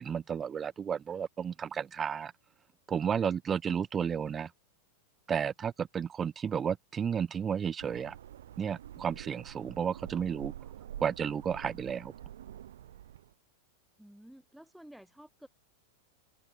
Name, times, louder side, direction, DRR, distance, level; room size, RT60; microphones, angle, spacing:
voice 1, 0.0-2.3 2.9-4.5 5.3-8.2 8.6-10.5 11.0-12.1, right 7 dB, 20° right, 0.5 m, -32 dB
sound 1, 7.8-13.3, right 11 dB, 60° right, 1.4 m, -47 dB
voice 2, 14.0-15.5, equal, ahead, 3.5 m, -53 dB
figure-of-eight pair, 90°, 0 cm